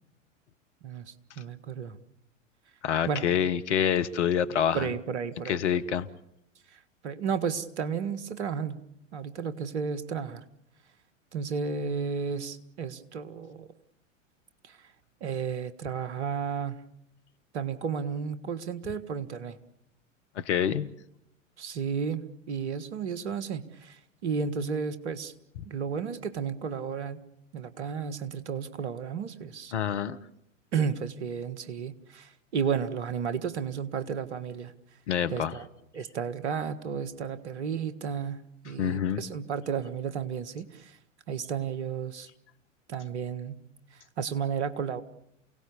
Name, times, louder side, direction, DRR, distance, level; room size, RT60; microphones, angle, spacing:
voice 1, 0.8-2.0 3.1-3.2 4.7-5.6 7.0-8.8 9.1-10.4 11.3-13.7 14.6-14.8 15.2-16.8 17.5-19.6 21.6-25.3 25.6-27.2 27.5-29.7 30.7-34.7 35.3-35.7 35.9-38.4 38.6-41.0 41.3-42.3 42.9-43.6 44.2-45.0, right 6 dB, 60° right, 13 dB, 1.7 m, -33 dB
voice 2, 2.8-4.9 5.5-6.1 20.4-20.9 29.7-30.2 35.1-35.6 38.8-39.2, left 9 dB, 60° left, 12 dB, 1.3 m, -26 dB
28.5 x 17.5 x 7.0 m, 0.77 s
figure-of-eight pair, 90°, 38 cm